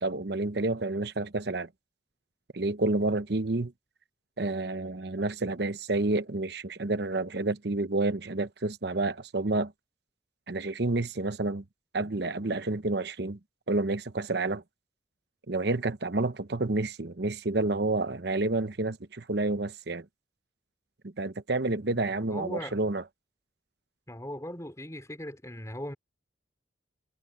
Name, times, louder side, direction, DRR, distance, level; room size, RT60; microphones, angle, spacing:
voice 1, 0.0-1.7 2.5-3.7 4.4-9.7 10.5-11.6 11.9-13.4 13.7-14.6 15.5-20.0 21.0-23.0, right 2 dB, 60° right, 0.9 m, -29 dB
voice 2, 21.9-22.8 24.1-26.0, left 1 dB, 15° left, 4.0 m, -39 dB
head